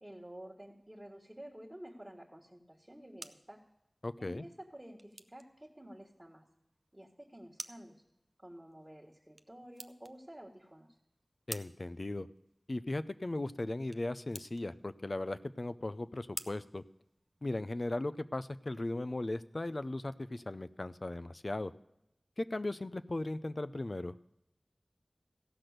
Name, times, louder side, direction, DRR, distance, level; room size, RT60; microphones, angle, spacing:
voice 1, 0.0-3.6 4.2-6.5 6.9-8.0 8.4-11.0, right 1 dB, 15° right, -2 dB, 1.6 m, -51 dB
sound 1, 2.7-17.7, right 1 dB, 40° right, 0.5 m, -53 dB
voice 2, 4.0-4.5 11.5-12.3 12.7-16.8 17.4-21.7 22.4-24.1, left 2 dB, 50° left, 13 dB, 0.5 m, -37 dB
16.0 x 6.0 x 6.5 m, 0.85 s
wide cardioid pair, 60°, 0 cm